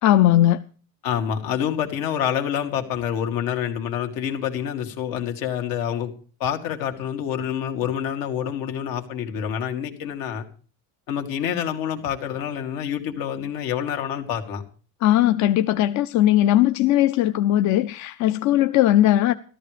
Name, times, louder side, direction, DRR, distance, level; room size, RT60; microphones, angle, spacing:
voice 1, 0.0-0.6 15.0-19.3, left 13 dB, 55° left, 0.6 m, -18 dB
voice 2, 1.0-6.1 6.4-10.4 11.1-14.6, left 9 dB, 85° left, 2.4 m, -27 dB
13.5 x 13.5 x 5.0 m
cardioid pair, 155°, 34 cm